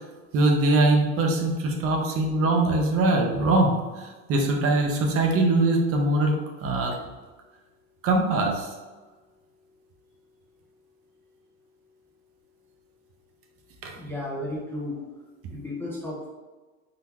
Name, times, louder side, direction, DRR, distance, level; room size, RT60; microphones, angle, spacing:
voice 1, 0.3-7.0 8.0-8.7 13.8-14.0, right 2 dB, 35° right, 1 dB, 0.6 m, -22 dB
voice 2, 13.9-15.0 15.5-16.3, left 1 dB, 5° left, -6 dB, 0.4 m, -33 dB
3.9 x 2.1 x 2.8 m, 1.3 s
supercardioid pair, 105°, 39 cm